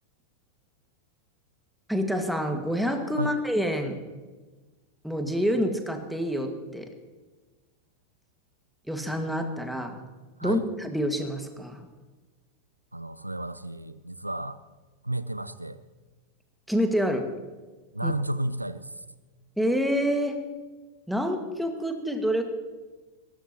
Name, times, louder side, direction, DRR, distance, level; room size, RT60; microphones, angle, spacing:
voice 1, 1.9-4.0 5.0-6.9 8.9-10.0 10.4-11.9 16.7-17.3 18.0-18.1 19.6-20.4 21.1-22.4, equal, ahead, 5 dB, 1.9 m, -27 dB
voice 2, 12.9-14.6 15.0-15.8 17.9-19.0, right 1 dB, 85° right, 15 dB, 0.5 m, -32 dB
20.5 x 18.0 x 3.0 m, 1.3 s
figure-of-eight pair, 90°, 0 cm